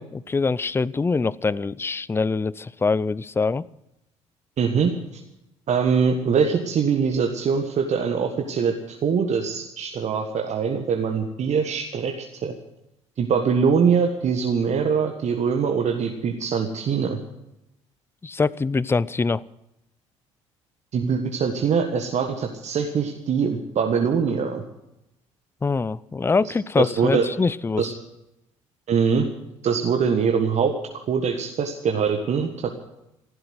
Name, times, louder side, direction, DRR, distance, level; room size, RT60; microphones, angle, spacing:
voice 1, 0.3-3.7 18.2-19.4 25.6-27.9, left 4 dB, 15° left, 22 dB, 0.5 m, -24 dB
voice 2, 4.6-5.2 5.7-12.5 13.2-17.2 20.9-24.6 26.8-27.3 27.8-27.9 28.9-29.3 29.6-30.7 31.1-32.7, right 6 dB, 45° right, 4 dB, 1.6 m, -23 dB
15.0 x 12.0 x 7.9 m, 0.87 s
figure-of-eight pair, 50°, 16 cm